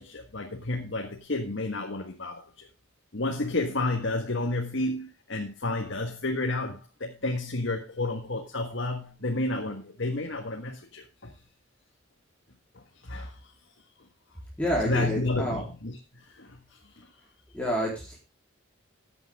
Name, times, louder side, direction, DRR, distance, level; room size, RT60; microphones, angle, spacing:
voice 1, 0.0-2.7 3.1-11.3 13.0-13.3 14.8-16.6 17.0-17.1, left 2 dB, 65° left, 1.6 m, -31 dB
voice 2, 14.6-15.6 17.5-18.2, equal, 5° left, 3.8 m, -28 dB
14.0 x 9.0 x 3.6 m
head